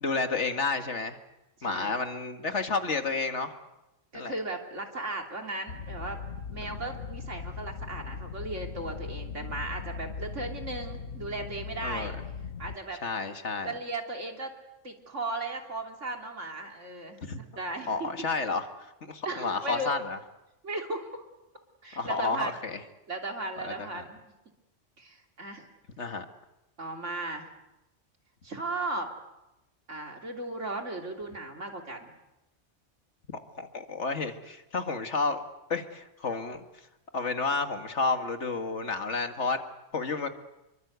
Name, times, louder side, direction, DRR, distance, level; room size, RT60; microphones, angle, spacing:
voice 1, 0.0-1.2 1.6-3.5 4.1-4.3 11.8-12.2 13.0-13.7 17.2-17.4 17.9-20.2 22.0-22.8 23.6-24.0 26.0-26.3 33.6-35.4 35.7-36.6 37.1-39.6 39.9-40.3, left 4 dB, 70° left, 7 dB, 2.2 m, -31 dB
voice 2, 1.6-2.0 4.1-6.2 6.5-12.1 12.6-13.0 13.6-14.5 14.8-18.1 19.3-19.9 20.6-21.3 21.8-22.6 23.1-24.3 25.0-25.7 26.8-27.5 28.4-29.1 29.9-32.1, right 2 dB, 80° right, 3 dB, 3.6 m, -36 dB
sound 1, 5.7-12.8, left 5 dB, 85° left, 1.5 m, -39 dB
28.0 x 23.5 x 8.2 m, 0.96 s
omnidirectional pair, 1.2 m